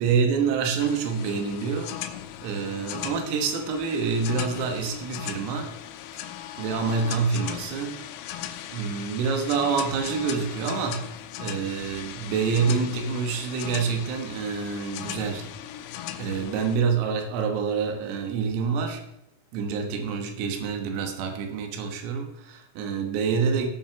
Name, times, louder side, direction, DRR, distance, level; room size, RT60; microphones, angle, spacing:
voice 1, 0.0-1.9 2.4-5.7 6.2-6.3 6.6-8.0 8.7-11.1 11.4-15.5 16.2-19.0 19.5-23.7, right 5 dB, 90° right, 4 dB, 4.0 m, -27 dB
sound 1, 0.8-16.8, left 11 dB, 85° left, 3.5 m, -38 dB
17.5 x 6.0 x 5.8 m, 0.83 s
omnidirectional pair, 5.9 m